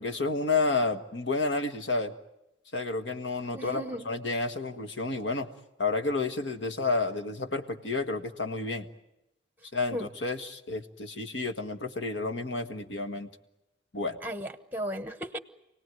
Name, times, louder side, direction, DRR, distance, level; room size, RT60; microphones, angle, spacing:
voice 1, 0.0-2.1 2.7-5.5 5.8-8.9 9.7-13.3 13.9-14.2, left 3 dB, 90° left, 8 dB, 1.6 m, -30 dB
voice 2, 3.5-4.1 9.9-10.1 14.2-15.4, equal, 10° right, 11 dB, 1.1 m, -35 dB
28.0 x 18.5 x 9.4 m, 0.94 s
head